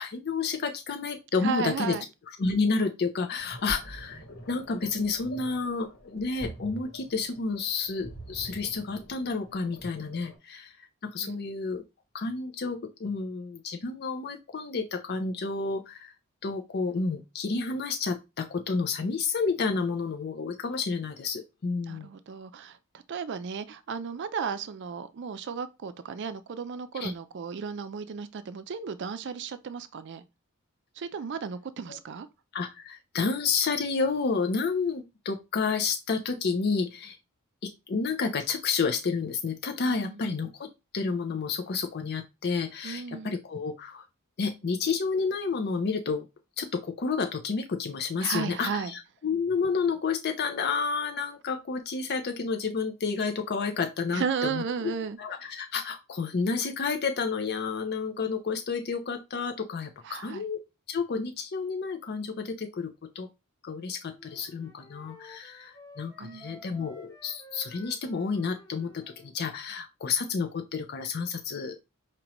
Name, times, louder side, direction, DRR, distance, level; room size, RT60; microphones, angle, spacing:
voice 1, 0.0-2.0 2.4-11.8 12.1-16.1 16.4-22.1 27.0-27.1 31.9-32.0 32.5-37.2 37.6-40.7 40.9-44.1 44.4-46.3 46.6-54.6 55.2-60.6 60.9-63.3 63.6-71.8, left 4 dB, 45° left, 0.5 m, -30 dB
voice 2, 1.4-2.0 11.2-11.4 21.9-30.2 31.0-32.3 39.9-40.2 42.8-43.3 48.2-48.9 54.1-55.2 60.0-60.4 66.2-66.6, right 6 dB, 50° right, 0.4 m, -34 dB
sound 1, 3.4-10.4, right 1 dB, 65° left, 1.6 m, -45 dB
Wind instrument woodwind instrument, 64.1-69.3, left 1 dB, 15° left, 1.1 m, -52 dB
5.1 x 2.9 x 3.0 m
head